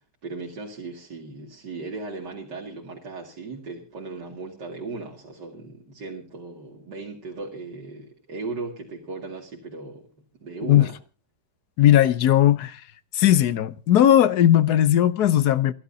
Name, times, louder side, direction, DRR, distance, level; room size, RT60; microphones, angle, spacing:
voice 1, 0.2-10.1 10.4-11.0, right 3 dB, 80° right, 3.0 m, -37 dB
voice 2, 11.8-12.8 13.1-15.7, left 11 dB, 70° left, 1.4 m, -18 dB
28.5 x 12.0 x 2.8 m
omnidirectional pair, 1.8 m